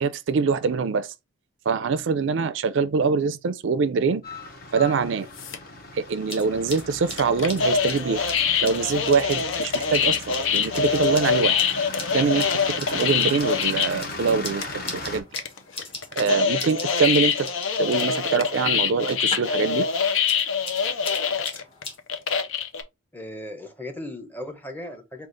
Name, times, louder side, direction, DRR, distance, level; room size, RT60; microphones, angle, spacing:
voice 1, 0.0-1.1 1.7-4.2 4.7-5.3 5.9-8.2 8.6-11.6 12.1-15.2 16.2-17.5 17.8-19.9, right 5 dB, 65° right, 0.4 m, -24 dB
sound 1, 4.2-15.2, left 2 dB, 45° left, 0.9 m, -38 dB
sound 2, 5.4-5.7 7.1-14.0 14.3-14.4 14.6-14.9 15.3-22.8, left 6 dB, 75° left, 0.6 m, -24 dB
sound 3, 6.2-19.6 19.9-22.0, left 3 dB, 30° left, 1.2 m, -40 dB
voice 2, 23.1-25.3, left 1 dB, 10° left, 0.8 m, -37 dB
4.9 x 2.4 x 3.7 m
head